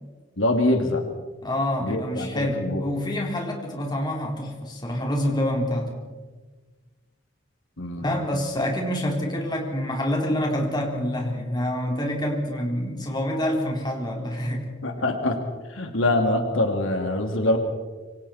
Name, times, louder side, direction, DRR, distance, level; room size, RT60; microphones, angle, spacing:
voice 1, 0.4-1.0 1.8-2.8 7.8-8.1 14.8-15.4 15.7-17.6, left 1 dB, 80° left, 4 dB, 2.8 m, -24 dB
voice 2, 1.4-6.0 8.0-14.7, left 1 dB, 20° left, 0 dB, 4.0 m, -27 dB
26.5 x 25.0 x 4.4 m, 1.3 s
head